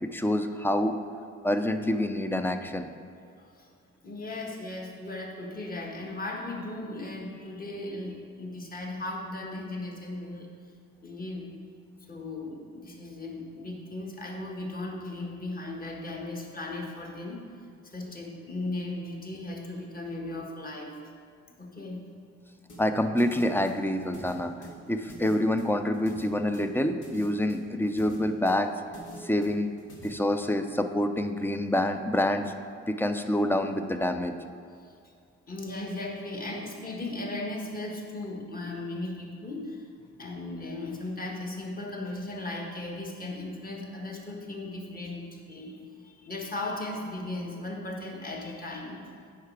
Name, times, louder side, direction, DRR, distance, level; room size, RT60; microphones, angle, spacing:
voice 1, 0.0-1.0 1.4-2.9 22.8-24.5 24.9-28.7 29.2-29.7 30.0-32.5 32.9-34.3, left 1 dB, 5° left, 7 dB, 0.5 m, -27 dB
voice 2, 3.4-3.7 4.0-10.5 11.0-11.5 12.1-17.5 17.8-20.9 21.6-22.1 34.8-35.1 35.5-39.9 40.2-49.0, left 2 dB, 30° left, -1 dB, 1.5 m, -37 dB
sound 1, 22.7-30.1, equal, 80° left, 2.0 m, -47 dB
8.4 x 5.7 x 4.7 m, 2.3 s
cardioid pair, 90°, 30 cm